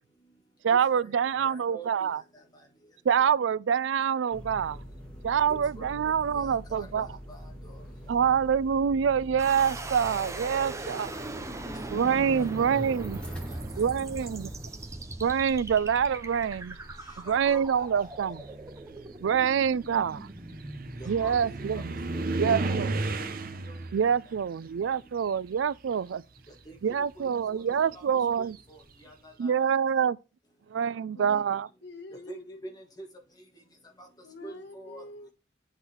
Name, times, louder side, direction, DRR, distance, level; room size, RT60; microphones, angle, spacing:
voice 1, 0.6-2.2 3.0-4.8 5.2-7.1 8.1-11.2 11.9-13.2 13.8-14.5 15.2-16.8 17.2-18.4 19.2-20.3 21.1-21.9 22.4-22.9 23.9-26.2 26.8-28.6 29.4-30.2 30.7-31.7, right 7 dB, 85° right, 0.4 m, -26 dB
voice 2, 1.4-2.1 5.5-6.0 6.4-7.8 11.4-13.4 17.3-17.8 21.2-21.8 23.7-23.8 26.7-26.8 27.5-27.6 27.9-28.0 28.7-28.8 29.0-29.7 32.3-32.4 32.6-32.7 33.0-33.1 34.0-34.1 34.4-35.0, right 2 dB, 20° left, 1.8 m, -46 dB
sound 1, 4.3-13.7, equal, 5° left, 1.9 m, -44 dB
sound 2, 9.4-22.3, right 2 dB, 15° right, 0.7 m, -40 dB
sound 3, 13.9-14.5 15.5-15.6 16.1-26.0 26.3-28.9, right 2 dB, 50° right, 0.8 m, -36 dB
voice 3, 31.8-32.6 34.2-35.3, left 2 dB, 65° left, 1.3 m, -45 dB
8.1 x 3.9 x 4.4 m
head